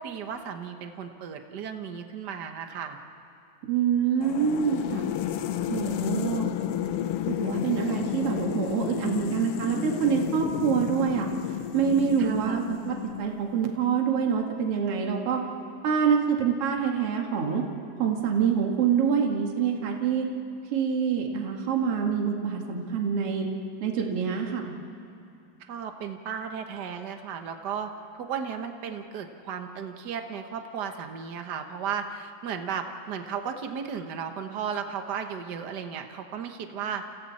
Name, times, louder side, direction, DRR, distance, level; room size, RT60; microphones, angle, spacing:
voice 1, 0.0-3.0 12.2-12.6 25.7-27.9 28.2-37.0, right 7 dB, 75° right, 6 dB, 0.9 m, -35 dB
voice 2, 3.7-5.0 5.7-6.5 7.3-11.3 11.7-15.4 15.8-17.6 18.0-20.3 20.7-23.5 23.8-24.8, right 7 dB, 50° right, 1 dB, 2.8 m, -26 dB
sound 1, 4.2-13.5, left 10 dB, 90° left, 1.3 m, -31 dB
29.5 x 28.5 x 4.3 m, 2.6 s
omnidirectional pair, 3.7 m